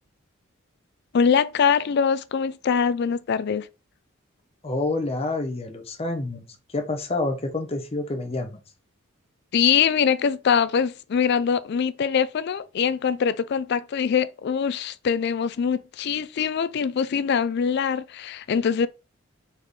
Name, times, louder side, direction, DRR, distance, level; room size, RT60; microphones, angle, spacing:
voice 1, 1.1-3.7 9.5-18.9, left 7 dB, 55° left, 0.3 m, -23 dB
voice 2, 4.6-8.5, left 2 dB, 30° left, 0.7 m, -28 dB
4.0 x 3.2 x 3.4 m
head